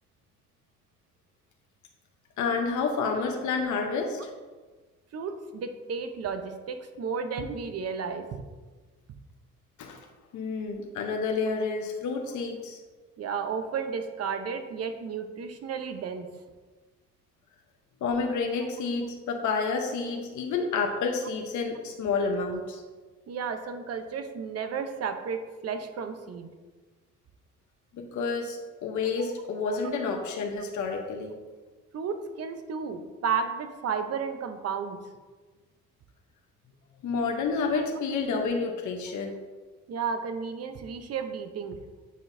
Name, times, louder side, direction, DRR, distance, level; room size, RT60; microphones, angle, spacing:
voice 1, 2.4-4.3 9.8-10.0 10.3-12.8 18.0-22.8 27.9-31.4 37.0-39.4, left 4 dB, 75° left, 3 dB, 0.8 m, -29 dB
voice 2, 5.1-8.3 13.2-16.3 23.3-26.5 29.2-29.3 31.9-35.0 39.9-41.8, right 6 dB, 55° right, 7 dB, 0.7 m, -33 dB
9.2 x 3.9 x 2.6 m, 1.3 s
cardioid pair, 90°, 30 cm